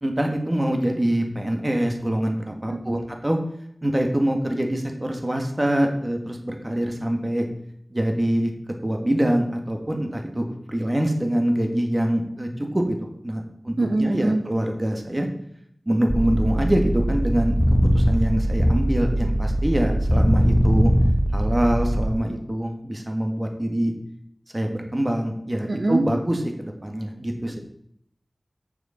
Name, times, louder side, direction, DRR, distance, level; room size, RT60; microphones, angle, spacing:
voice 1, 0.0-3.4 3.8-7.5 7.9-8.5 8.8-15.3 15.8-17.5 17.9-20.9 21.3-23.9 24.5-27.6, right 1 dB, 30° right, 3 dB, 1.7 m, -24 dB
voice 2, 13.8-14.4 25.7-26.0, right 2 dB, 85° right, 5 dB, 0.7 m, -22 dB
sound 1, 16.1-22.1, equal, 10° left, 0.9 m, -21 dB
6.8 x 6.6 x 5.7 m, 0.70 s
wide cardioid pair, 55°, 0 cm